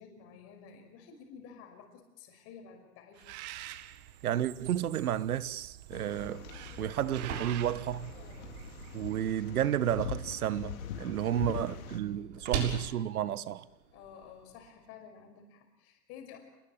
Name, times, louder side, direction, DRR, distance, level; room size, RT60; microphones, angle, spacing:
voice 1, 0.0-3.3 11.4-12.8 13.9-16.4, left 7 dB, 30° left, 5.9 m, -52 dB
Bird, 3.2-9.6, right 14 dB, 25° right, 1.1 m, -47 dB
voice 2, 4.2-6.4 6.8-8.1 8.9-13.6, right 11 dB, 65° right, 1.4 m, -32 dB
sound 1, 5.9-12.0, left 8 dB, 60° left, 4.0 m, -43 dB
sound 2, 6.7-14.7, right 6 dB, 45° right, 7.1 m, -43 dB
28.5 x 21.0 x 9.0 m
hypercardioid pair, 155°, 48 cm